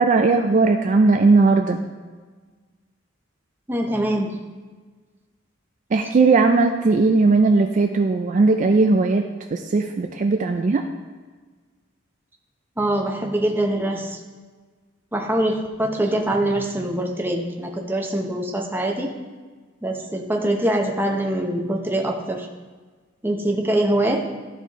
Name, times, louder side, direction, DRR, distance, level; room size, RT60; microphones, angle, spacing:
voice 1, 0.0-1.8 5.9-9.2 9.5-10.8, right 3 dB, 40° right, 4 dB, 0.4 m, -18 dB
voice 2, 3.7-4.3 12.8-14.2 15.1-19.1 19.8-22.5 23.2-24.3, right 1 dB, 10° right, 1 dB, 0.7 m, -23 dB
12.5 x 4.3 x 3.0 m, 1.4 s
head